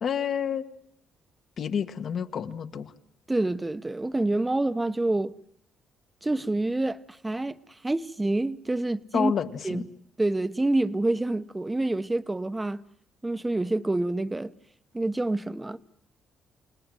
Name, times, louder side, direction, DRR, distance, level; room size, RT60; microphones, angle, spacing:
voice 1, 0.0-0.7 1.6-2.9 9.1-9.8, left 7 dB, 60° left, 1.5 m, -29 dB
voice 2, 3.3-5.3 6.2-7.5 7.8-9.3 9.6-9.8 10.2-12.8 13.2-14.5 14.9-15.8, right 2 dB, 15° right, 0.9 m, -27 dB
28.5 x 19.0 x 7.8 m
cardioid pair, 90°, 0 cm